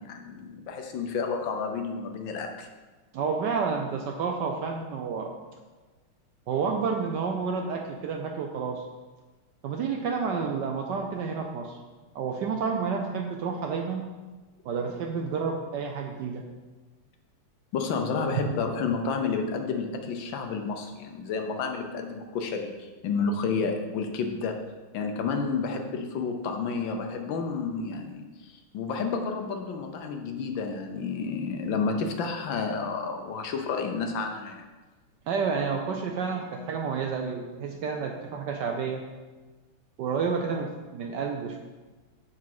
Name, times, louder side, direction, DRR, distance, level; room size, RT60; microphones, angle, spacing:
voice 1, 0.0-2.7 17.7-24.6 24.9-34.6, left 5 dB, 70° left, 4 dB, 1.4 m, -30 dB
voice 2, 3.1-5.3 6.5-8.8 9.6-11.8 12.1-14.0 14.6-16.5 18.4-18.5 35.3-39.0 40.0-41.6, right 5 dB, 70° right, 3 dB, 1.0 m, -30 dB
7.1 x 4.8 x 5.8 m, 1.3 s
omnidirectional pair, 2.4 m